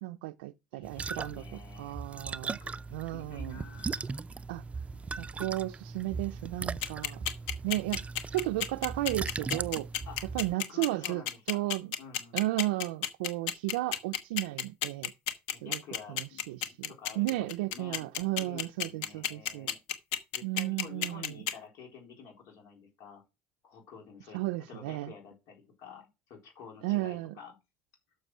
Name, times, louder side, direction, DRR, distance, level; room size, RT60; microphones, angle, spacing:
voice 1, 0.0-2.6 2.9-3.6 4.5-4.6 5.2-7.2 7.6-8.0 8.3-9.9 10.3-11.9 12.3-15.1 15.6-15.8 16.1-19.7 20.4-21.4 24.3-25.1 26.8-27.4, right 18 dB, 90° right, 0.4 m, -34 dB
voice 2, 0.7-2.0 2.6-2.8 3.1-4.1 10.1-10.3 10.7-11.7 12.0-12.4 15.5-18.1 18.4-19.8 20.3-23.2 23.6-24.4 24.7-27.6, left 6 dB, 70° left, 4.1 m, -50 dB
sound 1, 0.8-10.5, right 4 dB, 25° right, 0.5 m, -39 dB
sound 2, 6.8-21.5, left 11 dB, 85° left, 1.1 m, -31 dB
6.7 x 6.6 x 6.2 m
supercardioid pair, 85°, 6 cm